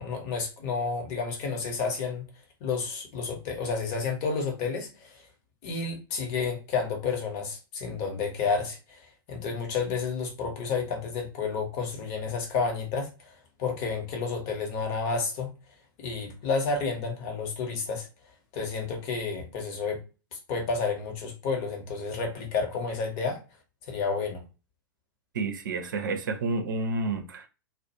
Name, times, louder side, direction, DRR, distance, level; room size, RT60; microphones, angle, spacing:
voice 1, 0.0-2.2 2.6-5.2 5.6-13.3 13.6-15.5 16.0-18.1 18.5-20.0 20.3-23.4 23.9-24.4, left 5 dB, 45° left, 0.9 m, -30 dB
voice 2, 25.3-27.5, right 3 dB, 65° right, 0.5 m, -30 dB
2.3 x 2.1 x 2.7 m
figure-of-eight pair, 100°, 12 cm